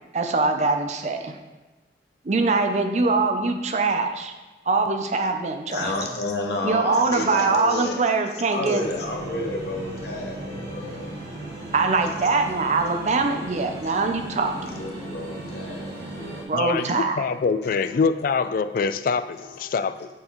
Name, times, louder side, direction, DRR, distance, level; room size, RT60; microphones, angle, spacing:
voice 1, 0.1-1.4 2.2-4.3 4.7-5.9 6.6-8.8 11.7-14.7 16.5-17.2, right 3 dB, 40° right, 6 dB, 0.5 m, -23 dB
voice 2, 5.7-8.0 8.5-11.1 12.1-12.2 14.8-16.4 16.8-16.9, left 2 dB, 70° left, 1 dB, 1.1 m, -31 dB
sound 1, 8.8-16.4, right 1 dB, 70° right, 1.4 m, -36 dB
voice 3, 16.5-20.1, left 5 dB, 50° left, 12 dB, 0.3 m, -24 dB
8.3 x 4.5 x 3.0 m, 1.2 s
head